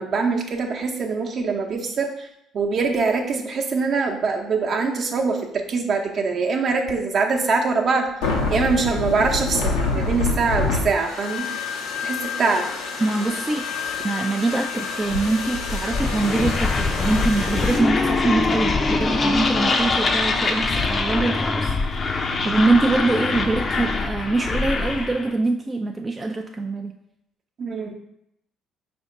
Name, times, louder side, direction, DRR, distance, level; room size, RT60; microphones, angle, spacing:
voice 1, 0.0-2.3 2.5-8.1 8.5-11.5 12.0-12.6 27.6-27.9, right 4 dB, 55° right, 2 dB, 0.7 m, -23 dB
sound 1, 8.2-17.8, left 3 dB, 80° left, 0.7 m, -27 dB
voice 2, 13.0-13.7 14.0-27.0, right 2 dB, 25° right, 3 dB, 0.3 m, -24 dB
sound 2, 15.9-25.3, left 3 dB, 40° left, 0.6 m, -23 dB
5.0 x 2.6 x 3.7 m, 0.79 s
hypercardioid pair, 60°, 0 cm